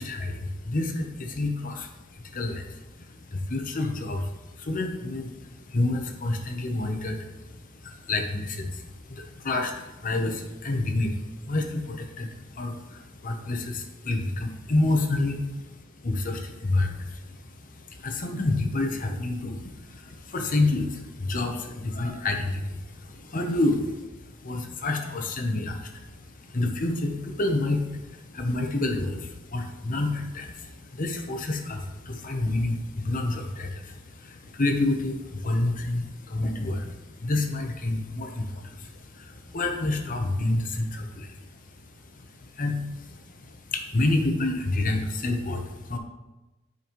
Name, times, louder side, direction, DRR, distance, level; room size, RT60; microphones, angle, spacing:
voice 1, 0.0-46.0, left 2 dB, 45° left, 4 dB, 0.9 m, -29 dB
9.7 x 5.3 x 3.1 m, 1.1 s
head